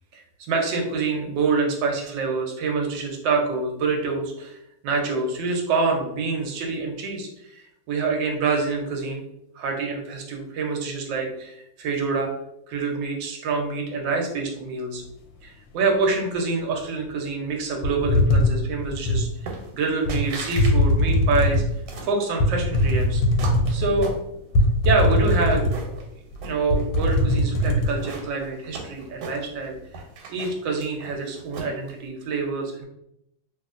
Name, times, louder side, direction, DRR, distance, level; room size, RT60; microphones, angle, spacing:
voice 1, 0.1-4.6 4.8-9.2 9.6-12.3 12.7-15.0 15.4-21.6 22.0-23.2 23.7-24.1 24.8-26.0 26.4-29.7 30.3-32.8, right 4 dB, 70° right, 2 dB, 1.2 m, -26 dB
sound 1, 17.8-19.3 20.1-20.2 20.6-21.7 22.4-24.1 24.5-26.0 26.3-26.4 26.7-27.9, left 1 dB, 75° left, 1.2 m, -20 dB
sound 2, 19.5-19.8 20.1-20.8 21.1-22.2 22.8-24.6 25.0-26.0 26.4-27.2 27.6-29.7 29.9-31.9, right 4 dB, 90° right, 1.5 m, -38 dB
3.0 x 2.8 x 2.4 m, 0.78 s
omnidirectional pair, 2.2 m